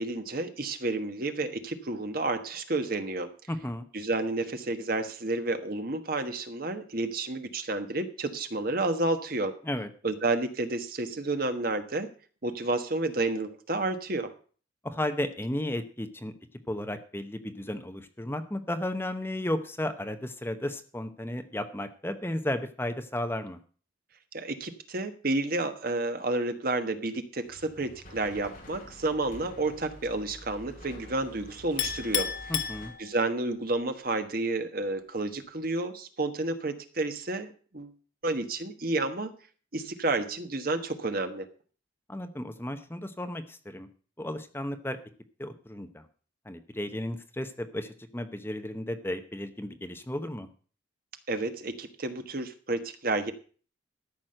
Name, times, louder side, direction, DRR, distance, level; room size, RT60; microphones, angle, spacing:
voice 1, 0.0-3.3 3.9-9.6 10.0-12.1 12.4-14.3 24.3-32.3 33.0-37.9 38.2-39.3 39.7-41.5 51.3-53.3, right 2 dB, 50° right, 8 dB, 1.3 m, -30 dB
voice 2, 3.5-3.9 9.6-9.9 14.8-16.3 16.7-23.6 32.5-32.9 42.1-43.9 44.2-45.0 45.4-46.0 46.5-50.5, left 1 dB, 10° left, 8 dB, 0.8 m, -34 dB
sound 1, 27.4-32.9, equal, 45° left, 6.8 m, -48 dB
Chink clink, 31.8-33.4, left 10 dB, 70° left, 1.8 m, -32 dB
13.5 x 6.3 x 7.6 m, 0.41 s
head